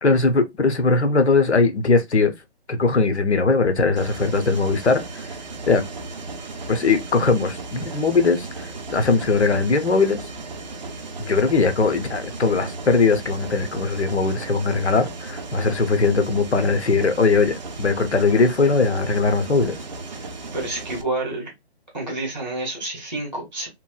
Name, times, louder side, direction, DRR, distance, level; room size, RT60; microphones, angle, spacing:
voice 1, 0.0-2.3 2.7-5.4 5.7-5.8 6.7-10.2 11.3-19.8, left 4 dB, 90° left, 0.8 m, -20 dB
Mechanisms, 4.0-21.0, right 3 dB, 45° right, 0.4 m, -35 dB
voice 2, 20.5-21.5 21.9-23.7, right 2 dB, ahead, 0.6 m, -29 dB
2.9 x 2.2 x 2.3 m
figure-of-eight pair, 155°, 32 cm